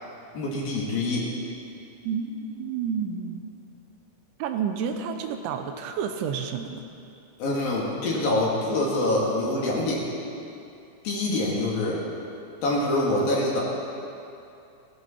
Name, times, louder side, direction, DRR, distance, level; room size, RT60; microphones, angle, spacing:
voice 1, 0.3-1.2 7.4-10.0 11.0-12.0 12.6-13.6, left 2 dB, 55° left, -4 dB, 3.5 m, -25 dB
voice 2, 2.0-3.4 4.4-6.8, right 7 dB, 80° right, 6 dB, 3.1 m, -30 dB
19.0 x 15.5 x 4.4 m, 2.6 s
omnidirectional pair, 5.5 m